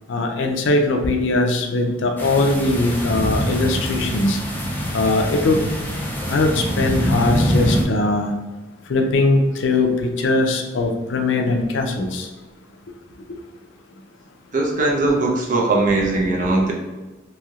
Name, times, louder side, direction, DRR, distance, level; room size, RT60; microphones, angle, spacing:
voice 1, 0.1-4.4 4.9-5.6 6.3-8.3 8.9-12.3 13.3-13.4 16.4-16.5, left 2 dB, 75° left, 4 dB, 0.4 m, -20 dB
sound 1, 2.2-7.8, equal, 10° left, 0.4 m, -24 dB
voice 2, 14.5-16.7, right 2 dB, 45° right, -2 dB, 0.6 m, -19 dB
3.1 x 2.7 x 2.4 m, 1.2 s
head